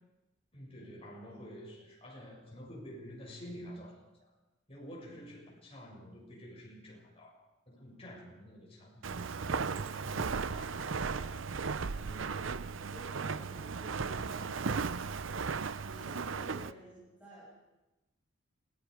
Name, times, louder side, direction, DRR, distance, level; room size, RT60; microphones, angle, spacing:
voice 1, 0.5-4.3 4.7-11.5, equal, 30° left, -2 dB, 7.0 m, -49 dB
Walk footsteps, 9.0-16.7, right 5 dB, 80° right, 0.7 m, -36 dB
voice 2, 11.9-15.6 15.9-17.5, equal, 10° right, -8 dB, 7.5 m, -54 dB
27.5 x 19.0 x 5.0 m, 1.0 s
head